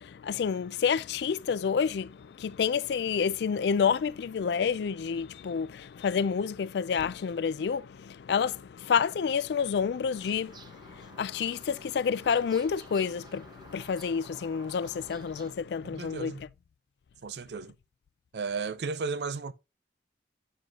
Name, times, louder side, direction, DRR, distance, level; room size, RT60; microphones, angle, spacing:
voice 1, 0.0-16.3, left 6 dB, 65° left, 0.3 m, -29 dB
sound 1, 10.1-15.5, right 2 dB, 25° right, 0.7 m, -52 dB
voice 2, 15.8-16.4 17.2-17.7 18.3-19.5, right 4 dB, 65° right, 0.5 m, -34 dB
9.0 x 7.7 x 2.4 m
head